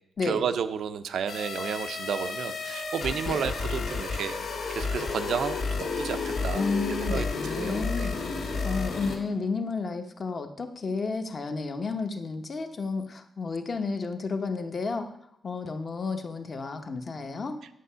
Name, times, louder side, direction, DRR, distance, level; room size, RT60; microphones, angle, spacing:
voice 1, 0.2-6.6 7.0-7.3 7.5-8.1, right 7 dB, 75° right, 10 dB, 0.6 m, -32 dB
sound 1, 1.3-9.2, left 4 dB, 70° left, 2.0 m, -31 dB
voice 2, 6.5-8.1 8.6-15.1 15.4-17.6, left 4 dB, 35° left, 6 dB, 0.9 m, -32 dB
9.4 x 7.4 x 5.6 m, 0.77 s
wide cardioid pair, 140°, 0 cm